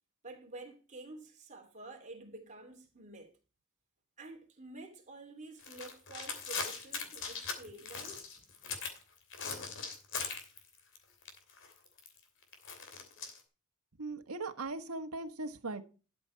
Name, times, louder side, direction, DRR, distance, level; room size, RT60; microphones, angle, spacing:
voice 1, 0.2-3.3 4.2-8.4, right 2 dB, 35° right, 3.0 m, -50 dB
sound 1, 5.6-9.0 9.3-11.0 11.2-13.4, left 5 dB, 60° left, 2.9 m, -40 dB
voice 2, 14.0-15.8, right 3 dB, 90° right, 1.3 m, -39 dB
12.5 x 6.9 x 4.5 m
head